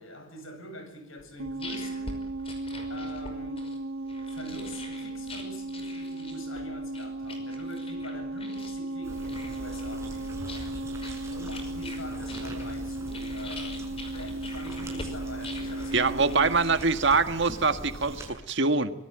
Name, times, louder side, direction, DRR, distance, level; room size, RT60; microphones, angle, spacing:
voice 1, 0.0-2.3 2.9-3.7 4.3-10.4 11.2-16.6, left 1 dB, 75° left, 7.5 m, -44 dB
sound 1, 1.2-17.3, left 2 dB, 30° left, 5.5 m, -44 dB
sound 2, 1.4-16.8, right 2 dB, 80° right, 1.2 m, -36 dB
sound 3, 9.0-18.3, right 1 dB, 15° right, 6.5 m, -42 dB
voice 2, 15.9-18.9, right 4 dB, 60° right, 1.8 m, -24 dB
25.0 x 23.0 x 9.0 m
head